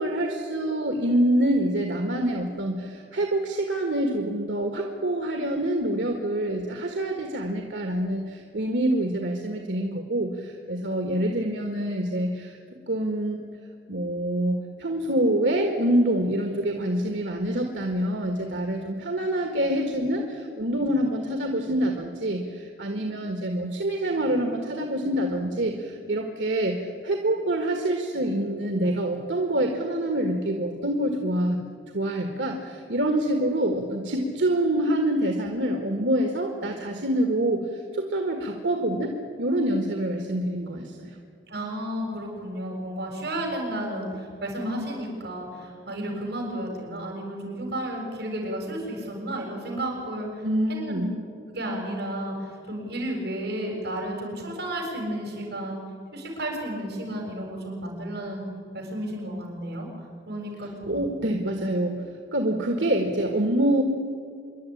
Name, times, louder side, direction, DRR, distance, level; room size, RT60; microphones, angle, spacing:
voice 1, 0.0-12.6 12.9-13.4 13.9-31.7 31.9-39.1 39.4-41.2 50.4-51.1 60.9-62.0 62.3-63.8, right 1 dB, 90° right, 4 dB, 1.7 m, -26 dB
voice 2, 41.5-51.1 51.5-55.8 56.1-58.4 58.7-59.9 60.3-61.1, right 1 dB, 65° right, 0 dB, 6.8 m, -32 dB
26.0 x 11.5 x 10.0 m, 2.3 s
head